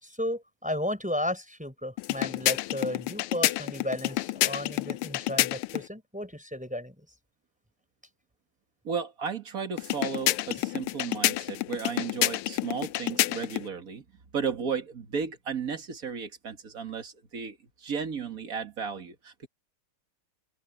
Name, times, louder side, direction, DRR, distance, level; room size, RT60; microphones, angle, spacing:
voice 1, 0.0-7.1, left 1 dB, 5° right, 4.4 m, -34 dB
sound 1, 2.0-5.9 9.8-13.7, left 16 dB, 85° left, 1.5 m, -29 dB
voice 2, 8.8-14.0 14.3-17.6 17.8-19.5, right 6 dB, 40° right, 2.2 m, -34 dB
open air
omnidirectional pair, 2.4 m